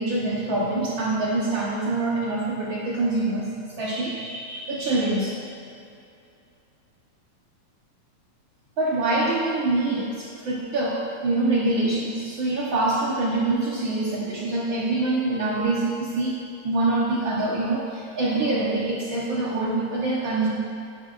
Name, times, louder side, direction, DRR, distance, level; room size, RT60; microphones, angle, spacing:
voice 1, 0.0-3.4 3.8-5.3 8.8-16.3 16.6-20.5, right 2 dB, 60° right, -6 dB, 1.4 m, -25 dB
12.0 x 9.8 x 2.5 m, 2.5 s
omnidirectional pair, 3.4 m